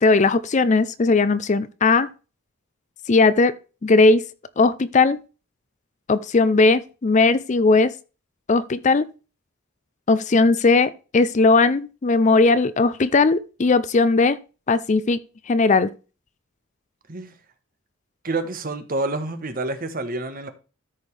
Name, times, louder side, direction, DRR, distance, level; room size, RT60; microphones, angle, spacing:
voice 1, 0.0-2.1 3.1-3.5 3.8-4.2 4.6-5.2 6.1-7.9 8.5-9.1 10.1-14.4 14.7-15.2 15.5-15.9, left 3 dB, 35° left, 0.5 m, -18 dB
voice 2, 18.2-20.5, right 2 dB, 45° right, 1.2 m, -28 dB
13.5 x 5.3 x 3.3 m
head